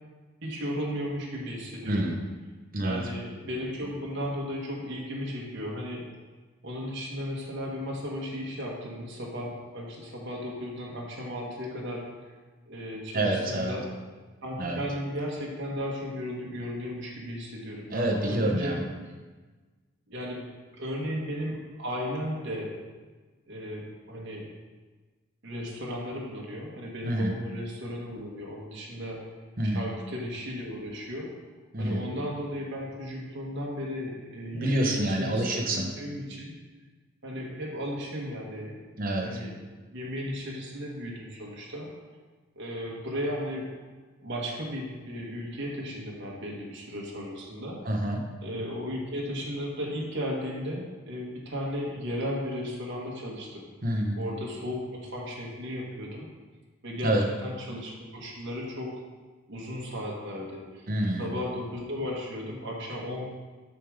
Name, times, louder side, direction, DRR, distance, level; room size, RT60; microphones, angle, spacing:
voice 1, 0.4-2.1 2.8-6.1 6.6-12.1 12.6-13.9 14.4-18.9 20.1-22.7 23.5-24.5 25.4-29.3 29.6-31.3 31.8-36.6 37.2-38.8 39.2-39.6 39.9-41.9 42.5-43.7 44.2-47.8 48.4-53.7 54.2-56.3 56.8-57.1 57.4-58.9 59.5-60.9 61.2-63.3, equal, 60° right, -3 dB, 1.4 m, -35 dB
voice 2, 1.9-2.2 2.7-3.0 13.1-13.8 14.6-14.8 17.9-18.8 27.0-27.3 29.6-29.9 31.7-32.0 34.5-35.9 39.0-39.4 47.8-48.2 53.8-54.2 57.0-57.3 60.9-61.2, right 1 dB, 45° right, 1 dB, 1.0 m, -27 dB
6.8 x 3.6 x 6.4 m, 1.3 s
head